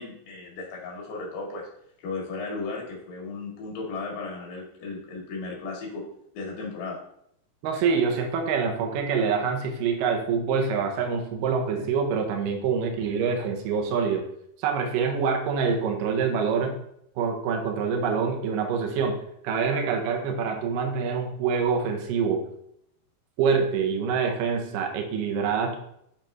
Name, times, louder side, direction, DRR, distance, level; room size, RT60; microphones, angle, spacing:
voice 1, 0.0-1.7 2.0-6.0 6.3-7.0, left 3 dB, 90° left, -2 dB, 4.0 m, -35 dB
voice 2, 7.6-14.2 14.6-16.8 17.2-19.2 19.4-22.4 23.4-25.8, right 5 dB, 70° right, 3 dB, 2.4 m, -25 dB
10.5 x 4.2 x 3.2 m, 0.74 s
omnidirectional pair, 4.6 m